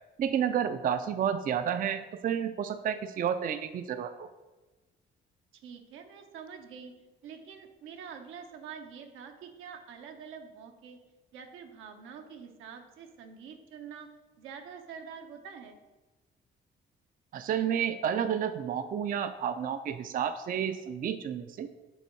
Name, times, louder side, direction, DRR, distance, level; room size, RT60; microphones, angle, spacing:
voice 1, 0.2-4.3 17.3-21.7, right 8 dB, 45° right, 10 dB, 0.4 m, -30 dB
voice 2, 5.5-6.9 7.2-11.0 11.3-14.1 14.4-15.8, right 6 dB, 85° right, 5 dB, 0.8 m, -46 dB
7.0 x 3.6 x 4.5 m, 1.2 s
cardioid pair, 90°, 20 cm